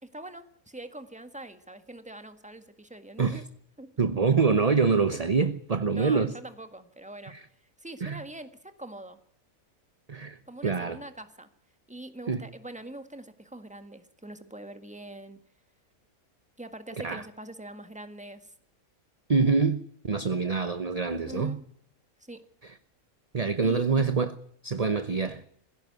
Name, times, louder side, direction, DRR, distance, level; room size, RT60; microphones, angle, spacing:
voice 1, 0.0-3.4 3.8-3.9 5.9-7.3 7.8-8.5 8.8-9.2 10.5-11.5 11.9-15.4 16.6-18.5 21.0-21.6 22.3-22.4 23.6-24.3, right 1 dB, 5° right, 1.6 m, -43 dB
voice 2, 4.0-6.3 7.3-7.4 8.0-8.2 10.1-11.0 12.3-12.4 17.0-17.2 19.3-21.6 23.3-24.3 24.6-25.4, right 4 dB, 30° right, 0.9 m, -25 dB
22.0 x 16.0 x 9.4 m
omnidirectional pair, 1.5 m